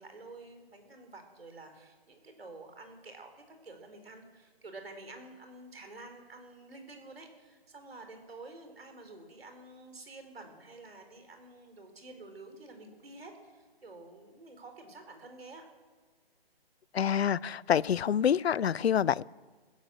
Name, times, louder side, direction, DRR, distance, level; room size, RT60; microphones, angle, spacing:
voice 1, 0.0-15.6, right 2 dB, 70° right, 5 dB, 4.1 m, -49 dB
voice 2, 16.9-19.2, left 8 dB, 85° left, 24 dB, 0.5 m, -27 dB
14.5 x 11.5 x 7.7 m, 1.5 s
hypercardioid pair, 180°, 31 cm